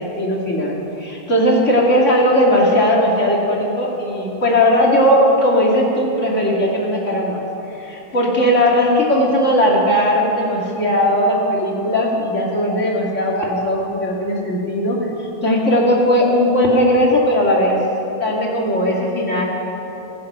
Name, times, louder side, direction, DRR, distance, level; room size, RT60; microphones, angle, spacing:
voice 1, 0.0-15.0 15.4-17.8 18.2-19.4, equal, 30° left, -3 dB, 1.6 m, -17 dB
26.5 x 9.4 x 5.6 m, 3.0 s
omnidirectional pair, 4.4 m